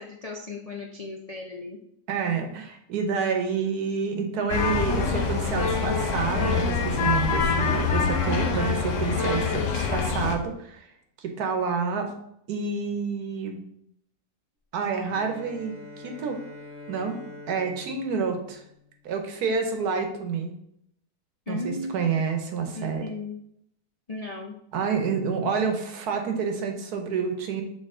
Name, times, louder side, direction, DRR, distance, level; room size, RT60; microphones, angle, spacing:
voice 1, 0.0-1.8 21.5-22.2 22.7-23.4 24.1-24.6, left 2 dB, 75° left, 0 dB, 0.3 m, -36 dB
voice 2, 2.1-10.8 11.2-12.1 12.5-13.6 14.7-15.7 16.0-16.4 16.9-17.2 17.5-18.6 19.0-20.5 21.5-23.0 24.7-27.6, right 5 dB, 75° right, 4 dB, 1.4 m, -28 dB
sound 1, 4.5-10.4, left 5 dB, 60° left, 1.1 m, -25 dB
Bowed string instrument, 15.0-19.1, left 2 dB, 10° right, 0.7 m, -45 dB
6.6 x 4.0 x 3.8 m, 0.73 s
omnidirectional pair, 1.7 m